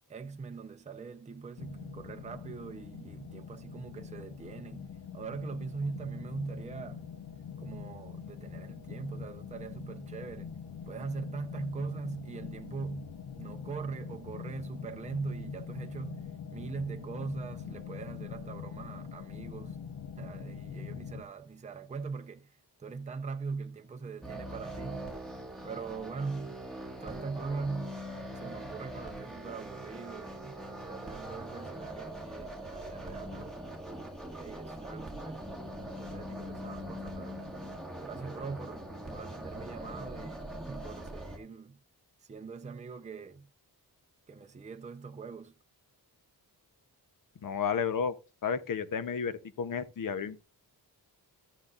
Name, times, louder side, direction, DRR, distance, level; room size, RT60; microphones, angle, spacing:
voice 1, 0.1-7.1 7.6-10.5 10.9-19.8 20.2-25.1 25.6-26.6 27.0-28.0 28.3-33.6 34.3-35.4 35.8-37.4 38.0-38.8 39.1-41.8 42.2-43.5 44.3-45.5, right 4 dB, 20° right, 0.5 m, -41 dB
sound 1, 1.6-21.2, left 7 dB, 80° left, 0.9 m, -44 dB
sound 2, 24.2-41.4, right 1 dB, ahead, 1.6 m, -42 dB
voice 2, 47.4-48.1 48.4-50.4, left 6 dB, 55° left, 0.8 m, -32 dB
13.5 x 7.6 x 2.4 m
wide cardioid pair, 180°, 39 cm